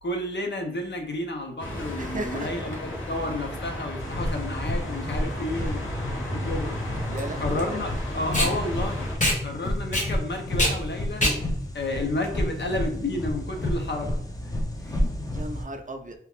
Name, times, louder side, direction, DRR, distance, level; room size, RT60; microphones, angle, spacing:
voice 1, 0.0-6.7 7.4-9.1 9.4-11.2 11.7-14.2 14.8-15.2, left 1 dB, 60° left, 0.7 m, -31 dB
sound 1, 1.6-9.2, left 1 dB, 75° left, 1.0 m, -33 dB
voice 2, 2.0-2.7 4.3-4.5 7.1-7.8 15.3-16.2, right 2 dB, 40° right, 0.5 m, -36 dB
sound 2, 4.0-15.6, left 1 dB, 15° left, 0.5 m, -31 dB
Packing tape duct tape, 5.7-13.0, equal, 35° left, 1.0 m, -28 dB
2.8 x 2.4 x 3.5 m
wide cardioid pair, 85°, 21 cm